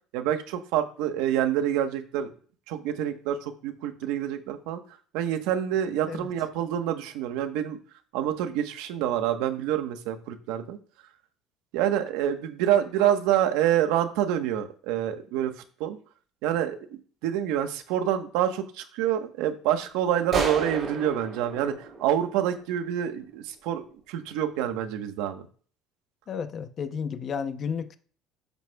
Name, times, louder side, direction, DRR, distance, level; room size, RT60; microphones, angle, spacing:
voice 1, 0.1-2.3 2.7-4.8 5.1-7.8 8.1-10.8 11.7-15.5 15.8-16.0 16.4-25.5, right 10 dB, 85° right, 1.2 m, -27 dB
sound 1, 20.3-22.9, right 4 dB, 30° right, 3.5 m, -33 dB
voice 2, 26.3-28.0, left 6 dB, 35° left, 0.7 m, -32 dB
12.0 x 8.1 x 2.3 m
cardioid pair, 150°, 0 cm